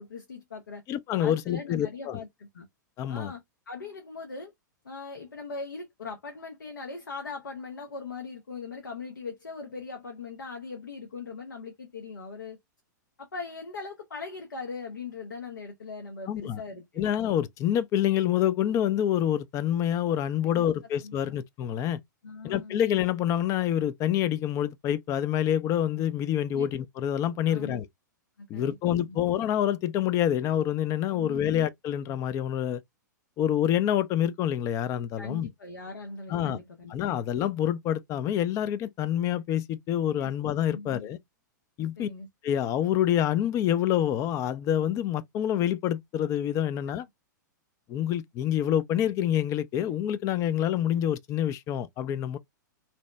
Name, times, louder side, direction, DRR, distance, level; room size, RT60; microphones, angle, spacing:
voice 1, 0.0-0.8 1.2-2.7 3.1-4.5 4.8-12.6 13.2-17.0 20.4-20.7 21.0-21.2 22.2-22.8 26.5-26.7 27.5-27.8 28.5-29.2 31.1-31.5 35.2-36.9 40.2-40.3 40.7-41.1 42.0-42.3, left 4 dB, 80° left, 0.7 m, -40 dB
voice 2, 0.9-2.2 3.0-3.3 16.3-16.6 17.0-22.0 22.4-27.9 28.5-32.8 33.4-35.5 36.3-36.6 36.9-41.2 41.8-42.1 42.4-47.1 47.9-52.4, left 10 dB, 30° left, 0.3 m, -27 dB
2.8 x 2.0 x 3.2 m
figure-of-eight pair, 105°, 10 cm